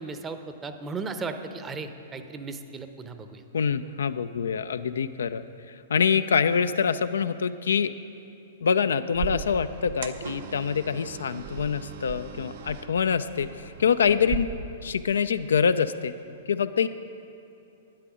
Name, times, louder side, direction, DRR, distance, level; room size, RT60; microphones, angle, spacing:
voice 1, 0.0-3.4, right 4 dB, 20° right, 8 dB, 0.8 m, -36 dB
voice 2, 3.5-5.4 5.9-7.9 8.6-14.5 14.8-16.1 16.5-16.9, left 6 dB, 70° left, 11 dB, 0.4 m, -25 dB
sound 1, 9.1-14.4, right 7 dB, 55° right, 0.7 m, -37 dB
12.0 x 9.9 x 5.0 m, 2.7 s
figure-of-eight pair, 110°, 0 cm